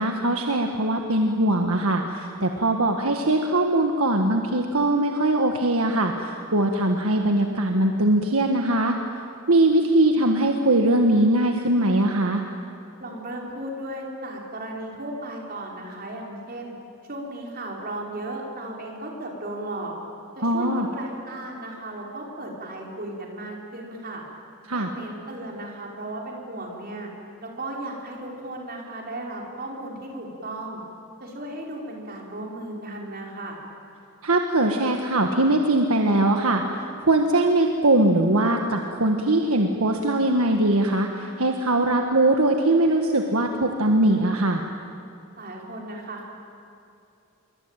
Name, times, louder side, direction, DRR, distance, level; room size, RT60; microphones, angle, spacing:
voice 1, 0.0-9.0 9.5-12.4 20.4-20.9 24.7-24.9 34.2-44.7, right 1 dB, 70° right, 3 dB, 1.6 m, -21 dB
voice 2, 13.0-16.7 17.0-19.9 20.3-24.2 24.7-27.1 27.4-30.8 31.2-33.6 45.4-46.3, right 1 dB, 45° right, 0 dB, 4.9 m, -35 dB
26.5 x 23.5 x 9.1 m, 2.7 s
head